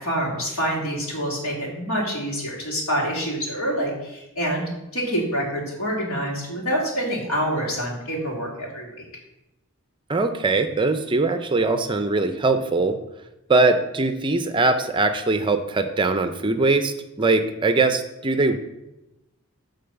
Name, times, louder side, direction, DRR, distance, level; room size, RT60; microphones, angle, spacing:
voice 1, 0.0-4.6 4.9-9.1, equal, 75° left, -2 dB, 2.7 m, -26 dB
voice 2, 10.1-13.0 13.5-18.6, right 3 dB, 20° right, 8 dB, 0.5 m, -21 dB
8.8 x 3.9 x 6.9 m, 0.94 s
head